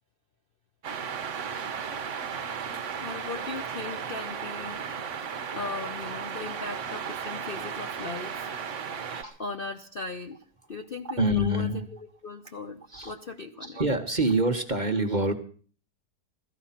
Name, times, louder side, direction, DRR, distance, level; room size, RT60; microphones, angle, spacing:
sound 1, 0.8-9.2, right 7 dB, 50° right, 1.2 m, -35 dB
voice 1, 3.0-4.8 5.5-8.5 9.4-10.4 10.7-11.9 12.2-13.8, left 3 dB, 45° left, 6 dB, 0.8 m, -38 dB
voice 2, 11.2-11.8 12.9-13.1 13.6-15.3, right 1 dB, 30° right, 6 dB, 1.3 m, -26 dB
16.5 x 14.0 x 5.8 m, 0.43 s
omnidirectional pair, 1.8 m